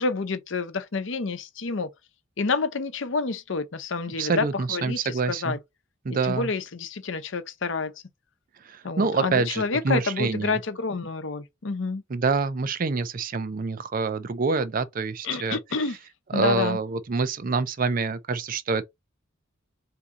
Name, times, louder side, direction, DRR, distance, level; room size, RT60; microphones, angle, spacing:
voice 1, 0.0-1.9 2.4-5.0 5.3-5.6 6.2-7.9 8.8-12.0 15.2-16.0 16.3-16.8, left 4 dB, 65° left, 0.7 m, -28 dB
voice 2, 4.2-5.6 6.0-6.5 8.6-10.6 12.1-15.6 16.3-18.8, right 4 dB, 45° right, 0.5 m, -26 dB
3.9 x 2.8 x 3.6 m
head